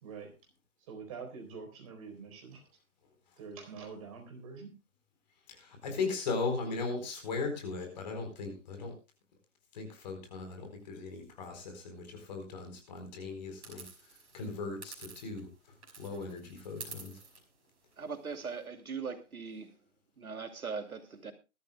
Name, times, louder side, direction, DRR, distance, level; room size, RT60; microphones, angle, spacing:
voice 1, 0.0-0.3 0.9-2.6 3.4-4.7, right 5 dB, 25° right, 4.1 m, -45 dB
voice 2, 5.6-8.9 9.7-13.8 14.3-15.5 16.0-17.1, left 4 dB, 30° left, 4.3 m, -37 dB
sound 1, 13.6-15.5 15.8-18.6, right 4 dB, 50° right, 5.4 m, -50 dB
voice 3, 18.0-19.7 20.2-21.3, right 5 dB, 80° right, 2.8 m, -40 dB
22.5 x 13.0 x 2.2 m
hypercardioid pair, 165°, 43 cm